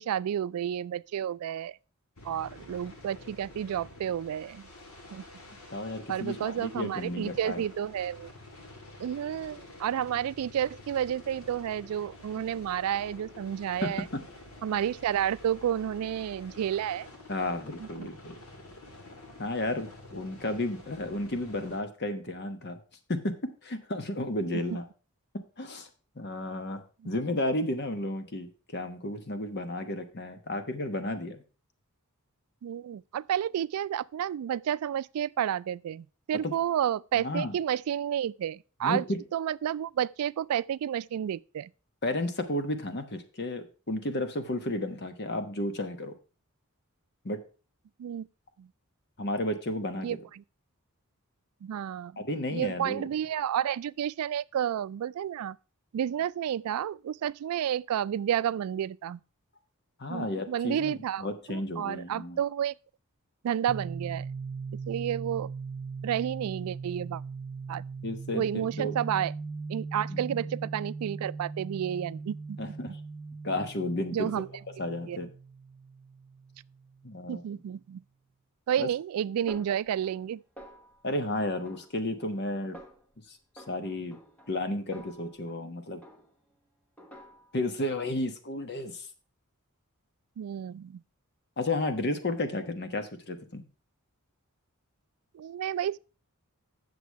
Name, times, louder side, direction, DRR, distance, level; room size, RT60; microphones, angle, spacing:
voice 1, 0.0-1.8 2.2-4.7 5.1-5.2 6.1-8.3 9.0-14.1 14.6-17.1 17.8-18.1 27.0-27.1 32.6-39.0 39.3-41.7 48.0-48.3 48.6-48.7 50.0-50.4 51.6-52.3 52.5-55.6 55.9-59.2 60.1-62.7 63.4-64.2 64.9-65.5 66.0-67.2 67.7-67.8 68.3-69.3 69.7-72.6 74.1-74.5 75.1-75.2 77.3-78.0 78.7-80.4 90.4-91.0 95.3-96.0, right 9 dB, 85° right, 0.3 m, -31 dB
sound 1, 2.2-21.8, left 2 dB, 75° left, 2.1 m, -49 dB
voice 2, 5.7-7.6 13.8-14.2 17.3-18.4 19.4-22.8 23.1-24.8 25.6-25.9 26.2-26.8 27.0-31.4 36.4-36.5 37.2-37.5 38.8-39.2 42.0-46.1 47.2-47.4 49.2-50.1 52.2-53.1 60.0-62.4 68.0-68.9 70.1-70.5 72.6-73.0 73.4-74.3 74.8-75.3 77.0-77.4 78.8-78.9 81.0-82.8 83.3-84.2 84.5-86.0 87.5-89.1 91.6-93.6, left 1 dB, 50° left, 1.1 m, -32 dB
sound 2, 63.7-77.3, right 4 dB, 45° right, 0.6 m, -40 dB
Snare drum, 79.5-80.3 80.6-81.1 81.6-82.4 82.7-83.1 83.6-85.7 86.0-86.5 87.0-87.7, right 1 dB, 5° left, 1.3 m, -51 dB
8.4 x 6.9 x 4.6 m
head